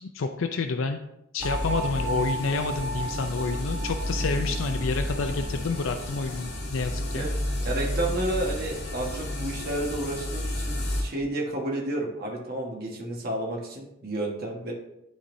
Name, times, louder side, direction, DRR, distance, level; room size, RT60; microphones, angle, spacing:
voice 1, 0.0-1.0 1.3-7.3, left 4 dB, 80° left, 6 dB, 0.5 m, -29 dB
sound 1, 1.4-11.0, left 1 dB, 60° left, 1.8 m, -31 dB
sound 2, 1.4-7.3, right 2 dB, 10° right, 1.1 m, -36 dB
voice 2, 7.6-14.7, right 1 dB, 50° right, -1 dB, 1.4 m, -31 dB
12.0 x 4.1 x 2.6 m, 0.82 s
head